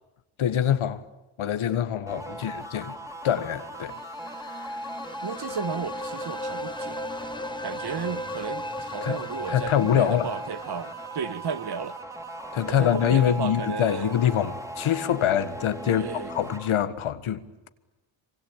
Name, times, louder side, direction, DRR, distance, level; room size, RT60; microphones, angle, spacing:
voice 1, 0.4-1.0 1.4-3.0 3.2-4.0 4.4-4.8 9.0-9.2 9.5-10.3 12.5-17.7, left 10 dB, 75° left, 1.7 m, -25 dB
sound 1, 2.1-16.7, equal, 5° right, 3.6 m, -38 dB
sound 2, 3.7-12.6, left 1 dB, 10° left, 0.9 m, -38 dB
voice 2, 5.2-7.1 7.6-12.0 12.6-14.2 15.9-16.3, right 6 dB, 50° right, 1.4 m, -34 dB
26.0 x 25.0 x 8.7 m
cardioid pair, 60°, 50 cm